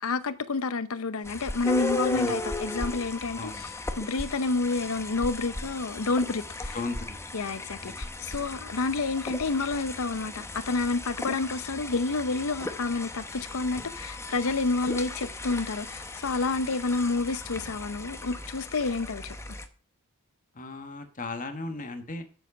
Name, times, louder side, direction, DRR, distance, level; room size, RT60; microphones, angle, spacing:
voice 1, 0.0-3.5 4.0-6.8 7.3-19.4, left 3 dB, 75° left, 0.7 m, -29 dB
sound 1, 1.2-19.7, left 2 dB, 15° left, 0.8 m, -36 dB
voice 2, 3.4-3.7 6.7-7.2 7.8-8.0 20.5-22.2, left 2 dB, 40° left, 1.4 m, -36 dB
7.7 x 7.3 x 6.0 m
head